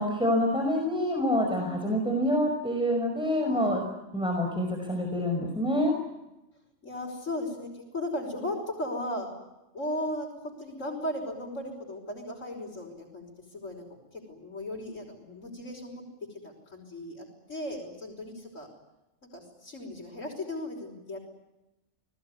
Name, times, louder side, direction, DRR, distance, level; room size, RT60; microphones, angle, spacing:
voice 1, 0.0-3.8 4.1-5.9, equal, 5° right, 2 dB, 5.5 m, -27 dB
voice 2, 1.4-1.8 3.4-3.9 6.8-9.4 9.7-13.9 14.1-16.0 16.3-18.7 19.3-21.2, left 1 dB, 85° left, -3 dB, 5.7 m, -36 dB
29.5 x 20.0 x 9.7 m, 0.97 s
omnidirectional pair, 1.3 m